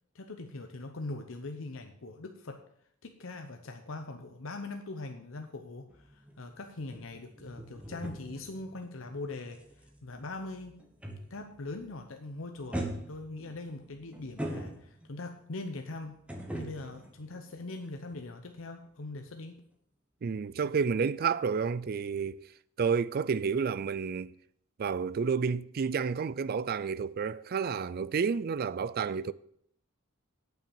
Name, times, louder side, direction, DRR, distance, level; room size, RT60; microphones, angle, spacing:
voice 1, 0.1-2.6 3.0-10.8 11.3-16.2 16.6-19.6, left 2 dB, 70° left, 0.8 m, -41 dB
sound 1, 5.9-11.6 11.9-12.2 12.7-15.2 16.3-18.2 18.5-18.6, right 1 dB, 5° right, 1.3 m, -41 dB
voice 2, 20.2-22.4 22.8-24.3 24.8-29.3, right 6 dB, 45° right, 0.4 m, -30 dB
9.5 x 5.9 x 7.1 m
head